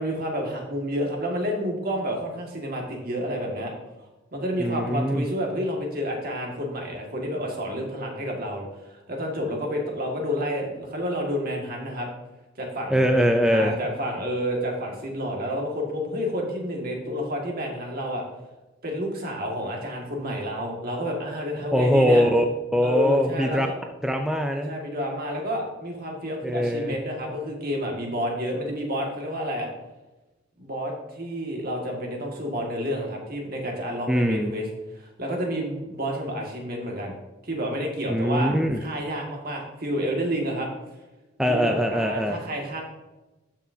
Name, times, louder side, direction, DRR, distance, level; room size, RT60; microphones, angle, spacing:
voice 1, 0.0-3.7 4.3-12.1 12.6-13.1 13.5-18.2 18.8-22.2 22.8-23.8 24.6-29.7 30.6-37.1 37.4-38.5 38.8-40.7 41.5-42.8, equal, 50° right, 0 dB, 1.9 m, -30 dB
voice 2, 4.6-5.2 12.9-13.8 21.7-22.4 22.7-23.7 24.0-24.7 26.4-26.9 34.1-34.6 38.1-38.8 41.4-42.4, equal, 5° right, 3 dB, 0.4 m, -22 dB
12.5 x 6.2 x 2.8 m, 1.1 s
head